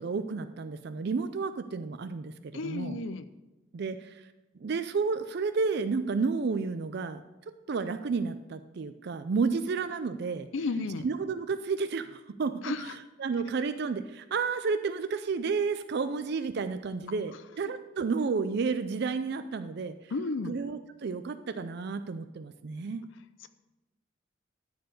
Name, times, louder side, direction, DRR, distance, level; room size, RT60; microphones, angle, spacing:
voice 1, 0.0-3.0 3.7-4.3 4.6-10.5 11.0-20.0 20.5-23.0, right 4 dB, 55° right, 11 dB, 0.4 m, -31 dB
voice 2, 2.5-3.2 10.5-11.1 12.6-13.0 20.1-20.5, left 3 dB, 75° left, 11 dB, 0.5 m, -32 dB
13.0 x 4.7 x 6.4 m, 1.0 s
head